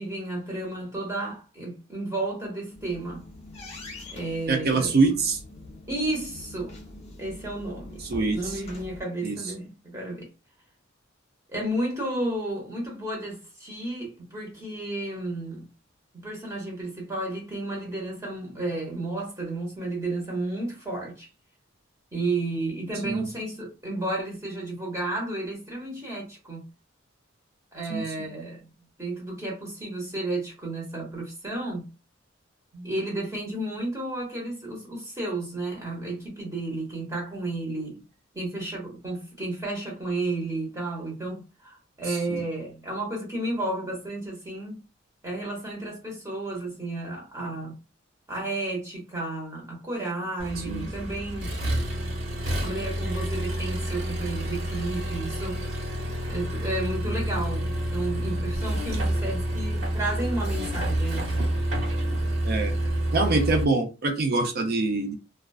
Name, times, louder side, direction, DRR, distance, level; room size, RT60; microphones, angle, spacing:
voice 1, 0.0-3.3 4.1-4.9 5.9-6.8 7.2-8.0 8.3-10.3 11.5-15.7 16.2-21.3 22.1-26.7 27.7-28.6 29.0-31.9 32.7-38.0 38.3-44.8 45.2-47.8 48.3-51.6 52.6-55.6 56.3-61.3, right 2 dB, 15° right, 1.1 m, -32 dB
sound 1, 2.5-9.0, left 2 dB, 35° left, 0.8 m, -44 dB
voice 2, 4.5-5.4 8.1-8.5 9.2-9.4 23.0-23.3 27.9-28.3 42.1-42.4 50.7-50.9 62.4-62.8 63.1-65.1, right 3 dB, 55° right, 0.6 m, -25 dB
Accelerating revving vroom, 50.4-63.6, right 1 dB, 90° right, 1.1 m, -28 dB
2.3 x 2.3 x 2.3 m
head